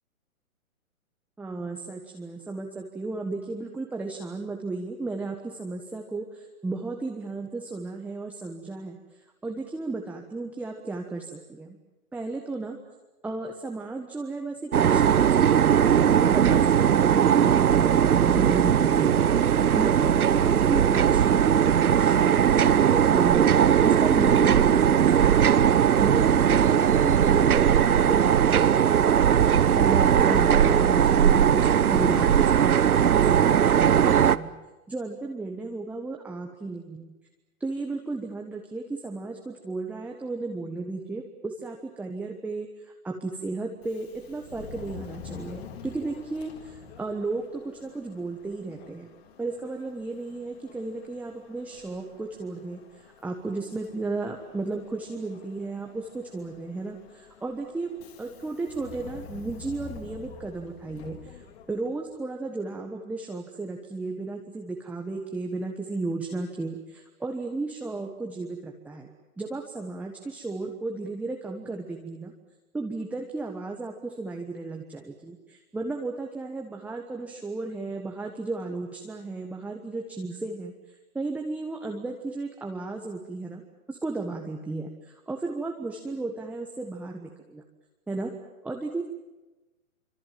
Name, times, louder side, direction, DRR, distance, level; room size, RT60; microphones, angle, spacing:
voice 1, 1.4-9.0 9.4-11.8 12.1-12.8 13.2-19.3 19.8-25.5 26.0-29.2 29.5-34.5 34.9-37.1 37.6-49.1 49.4-61.4 61.7-69.1 69.4-72.3 72.7-80.7 81.1-83.6 83.9-87.6 88.1-88.3 88.6-89.1, right 3 dB, 5° right, 1 dB, 1.3 m, -34 dB
sound 1, 14.7-34.4, right 8 dB, 85° right, 1.0 m, -19 dB
Subway metro underground, 43.7-62.1, left 7 dB, 45° left, 3.5 m, -47 dB
25.5 x 25.0 x 7.5 m, 1.1 s
hypercardioid pair, 145°, 43 cm